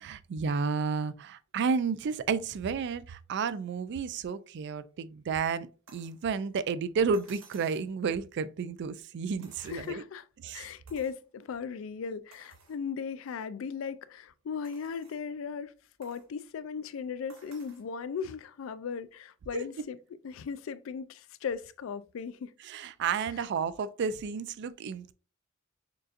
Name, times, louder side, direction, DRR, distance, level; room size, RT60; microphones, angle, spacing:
voice 1, 0.0-10.0 10.4-10.7 19.5-19.6 22.6-25.1, right 5 dB, 60° right, 0.3 m, -32 dB
sound 1, 5.9-6.2 7.1-7.9 9.4-10.2 10.9-11.2 11.7-11.8 12.3-12.8 13.4-13.5 14.6-15.3 16.0-16.3 17.3-17.9 19.1-19.2, right 4 dB, 80° right, 1.2 m, -56 dB
voice 2, 9.6-10.2 10.5-15.7 16.0-20.0 20.2-22.5, left 6 dB, 70° left, 0.3 m, -37 dB
6.6 x 2.5 x 2.4 m
head